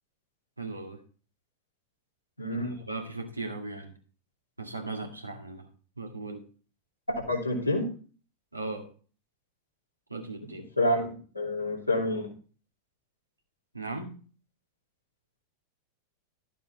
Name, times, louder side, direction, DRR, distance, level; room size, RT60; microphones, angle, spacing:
voice 1, 0.6-1.0 2.5-3.9 4.6-5.7 6.0-6.4 8.5-8.9 10.1-10.7 13.7-14.1, right 3 dB, 85° right, 2 dB, 1.9 m, -37 dB
voice 2, 2.4-2.8 7.1-7.9 10.8-12.3, left 1 dB, 85° left, -2 dB, 2.9 m, -28 dB
12.5 x 7.2 x 4.1 m, 0.39 s
figure-of-eight pair, 90°, 0 cm